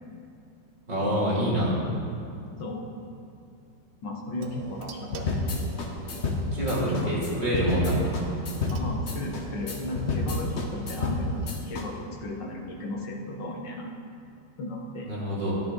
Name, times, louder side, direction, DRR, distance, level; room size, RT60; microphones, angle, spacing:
voice 1, 0.9-1.8 6.5-8.2 15.0-15.5, right 1 dB, 25° right, -8 dB, 2.9 m, -26 dB
voice 2, 4.0-5.5 6.8-7.3 8.7-13.9 14.6-15.1, left 1 dB, 80° left, -1 dB, 2.0 m, -35 dB
sound 1, 4.4-11.5, right 5 dB, 70° right, 1.2 m, -43 dB
sound 2, 5.1-11.9, left 3 dB, 45° left, 1.1 m, -29 dB
12.5 x 10.0 x 3.9 m, 2.5 s
omnidirectional pair, 1.9 m